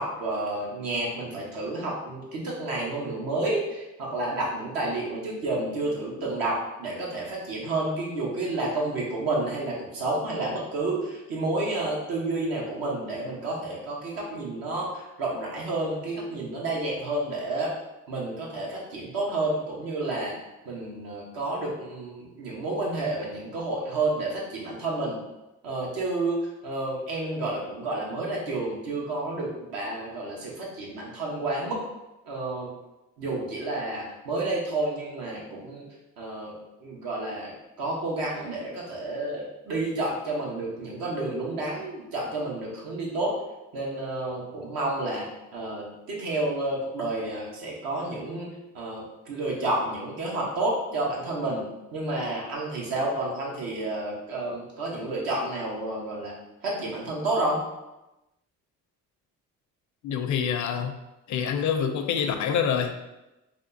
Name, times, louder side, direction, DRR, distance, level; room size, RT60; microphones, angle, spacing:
voice 1, 0.0-17.7 18.1-20.3 20.6-25.2 25.6-26.4 26.6-31.8 32.3-32.7 33.2-35.8 36.2-36.5 36.8-43.3 43.7-45.2 45.5-48.5 48.7-51.6 51.9-56.3 56.6-57.6, right 2 dB, 75° right, -3 dB, 1.1 m, -30 dB
voice 2, 60.0-60.9 61.3-62.9, left 7 dB, 55° left, 7 dB, 0.4 m, -26 dB
3.4 x 2.4 x 2.6 m, 0.98 s
supercardioid pair, 65°, 35 cm